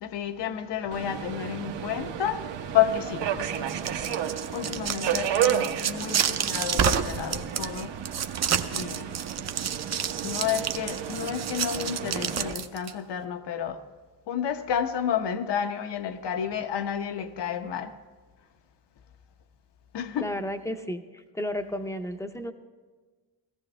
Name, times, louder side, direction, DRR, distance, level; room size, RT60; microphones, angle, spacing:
voice 1, 0.0-2.4 2.7-3.3 4.5-7.9 8.7-9.2 10.2-13.8 14.3-17.9 19.9-20.3, left 9 dB, 70° left, 0.9 m, -30 dB
Subway metro underground, 0.9-12.5, right 9 dB, 70° right, 1.0 m, -32 dB
sound 1, 3.6-12.9, right 8 dB, 40° right, 0.6 m, -29 dB
voice 2, 20.2-22.5, left 1 dB, 5° left, 0.6 m, -33 dB
18.0 x 14.5 x 3.3 m
cardioid pair, 140°, 43 cm